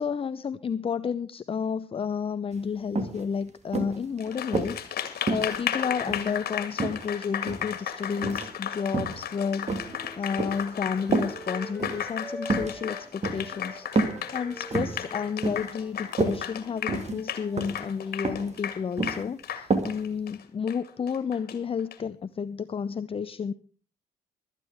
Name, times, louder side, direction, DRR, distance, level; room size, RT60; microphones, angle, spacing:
voice 1, 0.0-9.7 10.2-13.9 14.3-23.5, left 6 dB, 25° left, 14 dB, 0.6 m, -31 dB
sound 1, 2.5-2.6 3.0-3.2 3.7-4.8 5.3-6.4 6.8-7.7 8.2-8.5 8.9-9.2 9.7-10.7 11.1-11.3 11.8-12.0 12.4-12.7 13.2-13.5 14.0-14.2 14.6-15.0 15.4-15.7 16.0-16.4 16.9-17.2 17.6-17.8 18.2-18.5 18.8-19.2 19.7-19.9 20.3-20.4, right 3 dB, 35° right, 2.0 m, -28 dB
Applause, 4.2-22.0, left 9 dB, 50° left, 1.9 m, -34 dB
sound 2, 9.2-13.0 13.3-17.7, equal, ahead, 6.8 m, -45 dB
23.5 x 9.1 x 3.5 m, 0.39 s
figure-of-eight pair, 45°, 20 cm